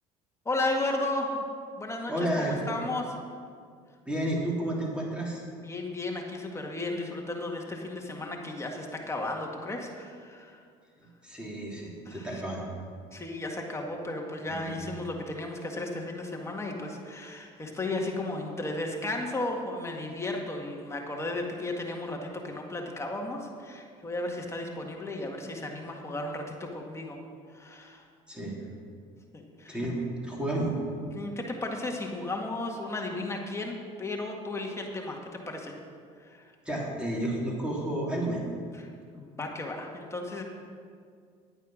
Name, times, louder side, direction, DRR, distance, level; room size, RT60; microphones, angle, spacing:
voice 1, 0.5-1.3 1.8-3.2 5.6-10.6 12.1-12.4 13.1-27.2 27.5-28.0 29.3-29.8 31.1-35.7 36.2-36.5 38.8-38.9 39.1-40.4, left 2 dB, 20° left, 1 dB, 1.8 m, -34 dB
voice 2, 2.1-2.5 4.0-5.4 11.2-12.6 14.5-14.8 28.3-28.5 29.7-30.0 30.2-30.7 36.6-38.4, right 1 dB, 5° right, -3 dB, 3.4 m, -31 dB
11.0 x 9.0 x 6.3 m, 2.1 s
supercardioid pair, 100°, 15 cm